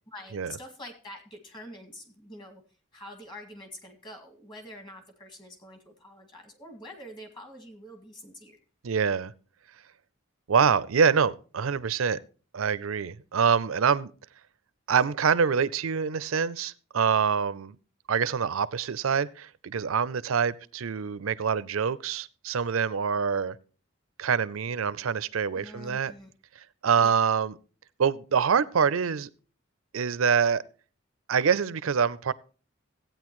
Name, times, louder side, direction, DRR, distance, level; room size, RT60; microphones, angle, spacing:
voice 1, 0.1-2.6 2.9-8.6 25.5-26.3 27.0-27.2, equal, 25° left, 2.1 m, -45 dB
voice 2, 8.8-9.3 10.5-12.2 12.5-14.1 14.9-17.8 18.1-23.6 24.2-26.1 26.8-27.5 28.0-29.3 29.9-30.6 31.3-32.3, right 6 dB, 90° right, 0.5 m, -25 dB
15.0 x 9.0 x 3.1 m
head